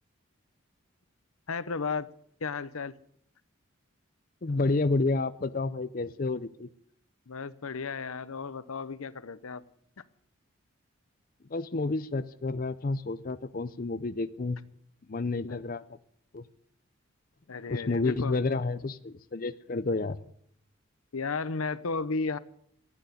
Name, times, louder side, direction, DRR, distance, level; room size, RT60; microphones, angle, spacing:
voice 1, 1.5-2.1 2.4-2.9 7.3-9.6 15.5-15.6 17.5-18.3 21.1-22.4, left 4 dB, 85° left, 16 dB, 0.8 m, -34 dB
voice 2, 4.4-6.7 11.5-14.6 15.1-15.8 16.3-16.4 17.7-20.2, left 3 dB, 40° left, 12 dB, 0.5 m, -30 dB
14.5 x 9.2 x 9.7 m, 0.68 s
head